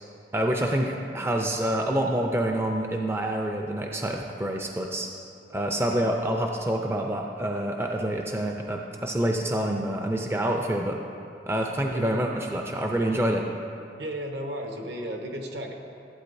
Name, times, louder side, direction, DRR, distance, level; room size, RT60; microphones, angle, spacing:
voice 1, 0.3-5.1 5.5-11.0 11.5-13.4, right 1 dB, 15° right, 1 dB, 0.4 m, -27 dB
voice 2, 11.9-12.3 14.0-15.7, equal, 65° right, 2 dB, 1.0 m, -34 dB
15.0 x 8.4 x 2.6 m, 2.5 s
head